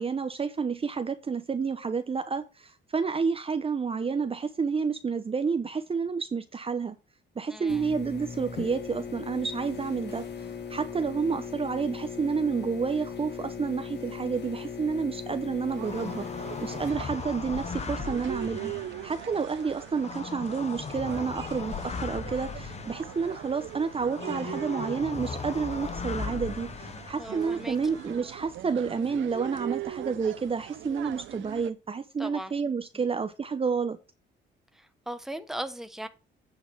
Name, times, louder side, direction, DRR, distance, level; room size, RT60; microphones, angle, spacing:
voice 1, 0.0-7.0 7.4-10.3 10.7-16.3 16.6-18.7 19.0-34.0, right 5 dB, 30° right, 0.8 m, -30 dB
voice 2, 7.5-7.8 27.2-27.8 32.2-32.5 32.9-33.0 34.8-36.1, right 1 dB, ahead, 1.1 m, -38 dB
sound 1, 7.7-16.9, left 6 dB, 60° left, 1.9 m, -39 dB
sound 2, 15.7-31.7, right 13 dB, 75° right, 0.6 m, -41 dB
sound 3, 15.8-28.2, left 5 dB, 35° left, 0.9 m, -38 dB
8.8 x 4.0 x 6.8 m
cardioid pair, 90°, 20 cm